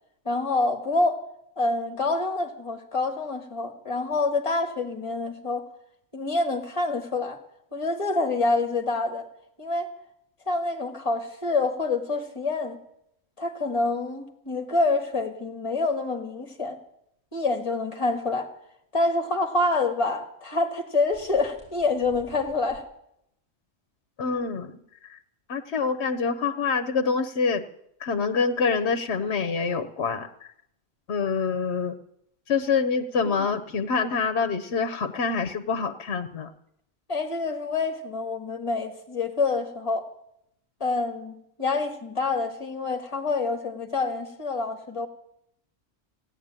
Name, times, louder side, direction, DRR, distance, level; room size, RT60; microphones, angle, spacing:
voice 1, 0.2-1.2 1.6-5.7 6.1-7.4 7.7-9.2 9.6-9.9 10.5-12.8 13.4-16.8 17.3-18.5 18.9-22.8 33.2-33.5 37.1-40.0 40.8-45.1, left 3 dB, 30° left, 5 dB, 1.8 m, -27 dB
sound 1, 21.1-22.8, left 1 dB, 5° right, 5.0 m, -50 dB
voice 2, 24.2-24.8 25.1-25.2 25.5-27.6 28.0-30.3 31.1-32.0 32.5-36.5, left 5 dB, 85° left, 8 dB, 1.1 m, -26 dB
16.5 x 10.0 x 8.9 m, 0.77 s
omnidirectional pair, 1.1 m